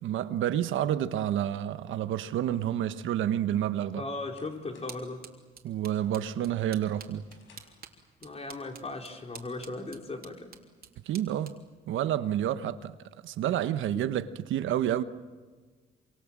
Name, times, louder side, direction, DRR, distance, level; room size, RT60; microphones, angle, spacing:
voice 1, 0.0-4.0 5.6-7.2 11.1-11.5 11.9-12.9 13.2-15.0, right 11 dB, 80° right, 1.2 m, -29 dB
voice 2, 4.0-5.3 8.2-10.5 13.4-13.6, left 2 dB, 30° left, 4.3 m, -38 dB
sound 1, 4.3-5.2 5.6-6.0 6.4-7.9, left 4 dB, 75° left, 6.1 m, -62 dB
sound 2, 4.9-12.9, right 6 dB, 50° right, 3.3 m, -52 dB
26.5 x 25.5 x 7.5 m
cardioid pair, 90°, 20 cm